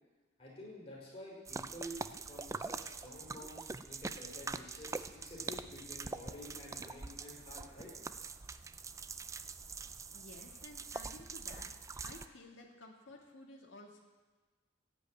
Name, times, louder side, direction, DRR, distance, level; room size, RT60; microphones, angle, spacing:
voice 1, 0.4-2.0 2.2-7.9, left 1 dB, 30° left, -5 dB, 5.1 m, -50 dB
sound 1, 1.5-12.3, right 4 dB, 15° right, 0.3 m, -44 dB
voice 2, 10.1-11.7 12.0-14.0, left 2 dB, 65° left, 0 dB, 1.7 m, -53 dB
16.0 x 5.5 x 9.0 m, 1.3 s
head